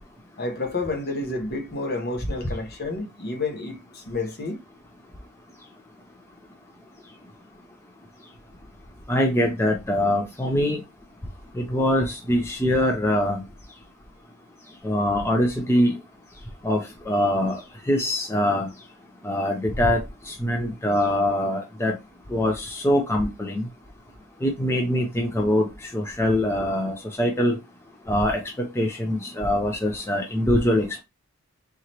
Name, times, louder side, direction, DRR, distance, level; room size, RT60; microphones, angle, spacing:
voice 1, 0.4-4.6, left 2 dB, 45° left, 0.9 m, -30 dB
voice 2, 9.1-10.8 11.6-13.4 14.8-16.0 16.6-17.6 17.9-18.7 19.2-20.0 20.3-21.9 22.3-23.7 24.4-25.7 25.9-27.6 28.1-31.0, left 1 dB, 10° left, 0.5 m, -23 dB
3.8 x 3.0 x 2.9 m
head